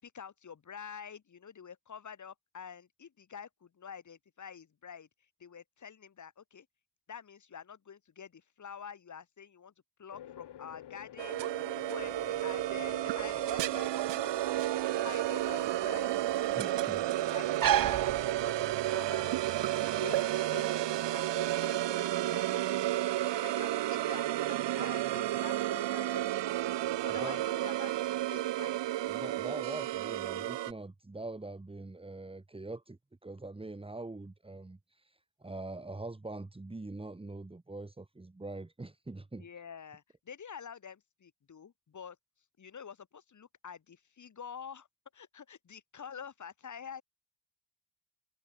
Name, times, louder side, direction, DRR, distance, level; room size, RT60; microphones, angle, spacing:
voice 1, 0.0-5.1 5.4-6.7 7.1-9.7 10.0-17.0 17.3-19.4 19.8-22.9 23.4-28.8 39.4-42.2 42.6-44.9 45.1-47.0, left 7 dB, 40° left, 5.9 m, -48 dB
sound 1, 10.1-21.4, left 11 dB, 70° left, 5.8 m, -51 dB
sound 2, 11.2-30.7, right 14 dB, 75° right, 1.3 m, -32 dB
sound 3, 12.0-19.0, right 11 dB, 50° right, 1.0 m, -36 dB
voice 2, 16.5-17.0 27.1-27.4 29.0-39.5, right 2 dB, 15° right, 3.2 m, -43 dB
cardioid pair, 130°, 43 cm